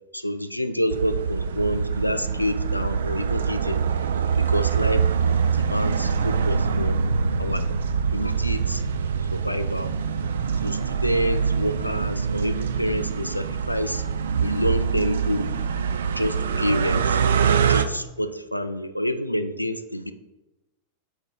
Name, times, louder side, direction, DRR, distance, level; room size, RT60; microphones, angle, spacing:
voice 1, 0.1-3.8 4.5-7.0 7.4-7.6 8.1-8.8 9.3-9.9 10.6-14.0 14.4-15.5 16.2-17.2 17.7-20.1, equal, 90° left, 10 dB, 0.3 m, -28 dB
sound 1, 0.9-17.9, right 6 dB, 65° right, 0.3 m, -24 dB
6.4 x 3.2 x 4.6 m, 1.0 s
figure-of-eight pair, 90°, 0 cm